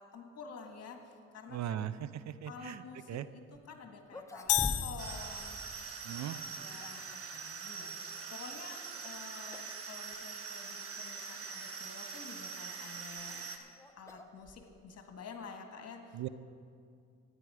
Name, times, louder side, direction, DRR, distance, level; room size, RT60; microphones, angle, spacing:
voice 1, 0.0-1.8 2.5-5.6 6.3-16.2, left 5 dB, 55° left, 4 dB, 1.8 m, -50 dB
voice 2, 1.5-2.8 3.1-3.3 6.0-6.4 16.1-16.3, right 11 dB, 65° right, 14 dB, 0.6 m, -38 dB
sound 1, 3.5-3.6 4.0-5.2 5.4-5.5 6.4-7.1 8.9-9.2 9.5-9.8 10.1-10.2 11.0-11.1 12.9-15.0, left 1 dB, 10° left, 0.9 m, -44 dB
sound 2, 4.5-5.9, left 14 dB, 90° left, 0.6 m, -33 dB
sound 3, 5.0-13.6, right 5 dB, 50° right, 1.3 m, -43 dB
14.0 x 10.0 x 4.9 m, 2.3 s
cardioid pair, 90°, 30 cm